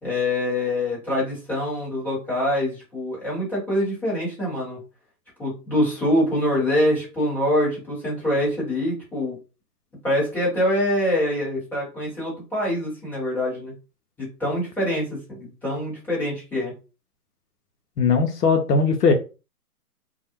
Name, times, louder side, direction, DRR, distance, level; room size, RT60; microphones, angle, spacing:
voice 1, 0.0-4.8 5.4-9.4 10.0-13.7 14.2-16.7, left 1 dB, 5° left, -8 dB, 0.9 m, -24 dB
voice 2, 18.0-19.1, left 4 dB, 85° left, 4 dB, 0.7 m, -19 dB
2.4 x 2.0 x 2.8 m, 0.32 s
hypercardioid pair, 140°, 46 cm